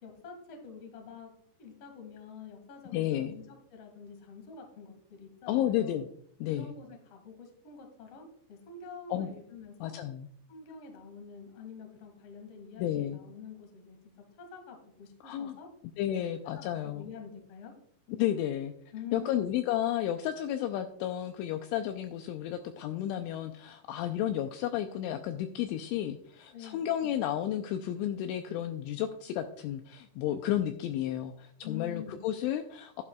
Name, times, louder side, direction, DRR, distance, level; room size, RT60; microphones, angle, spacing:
voice 1, 0.0-1.3 1.6-6.0 6.5-9.9 10.5-14.0 14.4-15.7 16.0-16.3 16.5-17.7 18.9-19.5 26.5-27.2 31.6-32.2, left 6 dB, 55° left, 3 dB, 1.7 m, -47 dB
voice 2, 2.9-3.3 5.5-6.1 6.4-6.7 9.1-9.3 9.8-10.3 12.8-13.2 15.2-15.6 16.0-17.1 18.1-18.7 19.1-33.0, left 11 dB, 90° left, 7 dB, 2.7 m, -32 dB
11.5 x 11.0 x 2.3 m, 0.65 s
omnidirectional pair, 6.0 m